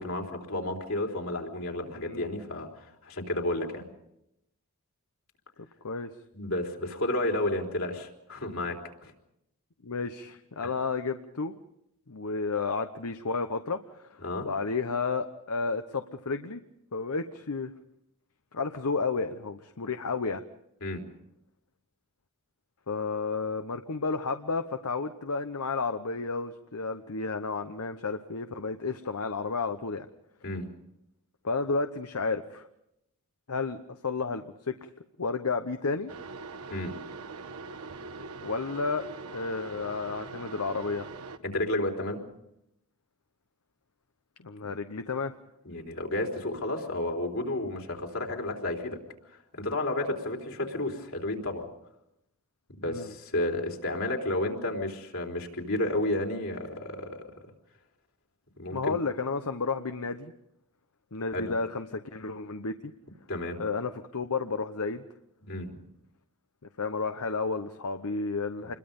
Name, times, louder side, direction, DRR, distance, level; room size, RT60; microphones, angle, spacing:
voice 1, 0.0-3.9 6.3-8.8 9.0-9.1 10.6-10.7 14.2-14.5 20.8-21.0 30.4-30.7 36.7-36.9 41.4-42.2 45.7-49.0 49.5-51.6 52.8-57.2 58.6-59.0 61.3-61.5 63.3-63.6 65.4-65.7 68.6-68.7, left 1 dB, 65° left, 2 dB, 3.7 m, -31 dB
voice 2, 1.9-2.3 5.8-6.1 9.8-11.5 12.1-16.6 16.9-17.7 18.5-20.4 22.9-30.1 31.4-32.7 33.5-34.8 35.2-36.1 38.4-39.1 39.3-41.1 44.4-45.3 52.9-53.1 58.7-60.3 61.1-62.9 63.6-65.0 66.8-68.7, left 4 dB, 85° left, 8 dB, 0.9 m, -32 dB
sound 1, 36.1-41.4, right 4 dB, 80° right, 1.2 m, -42 dB
27.5 x 22.0 x 5.4 m, 0.80 s
head